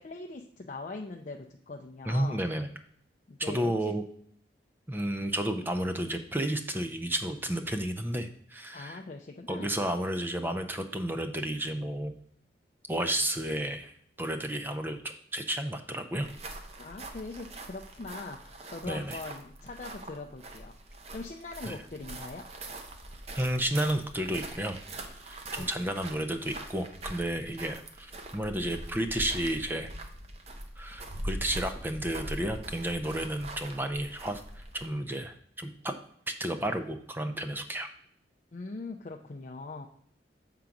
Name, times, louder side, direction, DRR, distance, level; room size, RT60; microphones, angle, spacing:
voice 1, 0.0-2.4 3.3-3.9 8.7-9.7 16.8-20.7 21.1-22.4 25.6-25.9 38.5-39.9, left 3 dB, 40° left, 2 dB, 0.5 m, -41 dB
voice 2, 2.1-2.7 3.4-4.0 4.9-9.0 9.5-12.1 12.9-15.0 15.3-16.3 18.9-19.2 21.7-21.8 23.4-24.8 25.2-29.9 30.8-35.9 36.4-37.9, right 1 dB, 10° right, 7 dB, 0.5 m, -32 dB
sound 1, 16.1-35.0, right 1 dB, 35° right, 0.8 m, -43 dB
7.1 x 3.8 x 5.8 m, 0.63 s
head